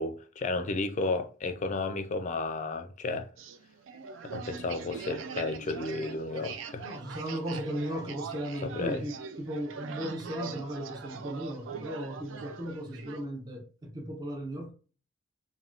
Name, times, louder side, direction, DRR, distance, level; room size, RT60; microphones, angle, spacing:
voice 1, 0.0-3.3 4.2-6.9 8.6-9.0, left 3 dB, 40° left, 0.4 m, -33 dB
sound 1, 3.4-13.2, right 6 dB, 85° right, 0.3 m, -42 dB
voice 2, 6.8-14.7, equal, 20° right, 0.5 m, -36 dB
3.5 x 2.2 x 2.4 m
head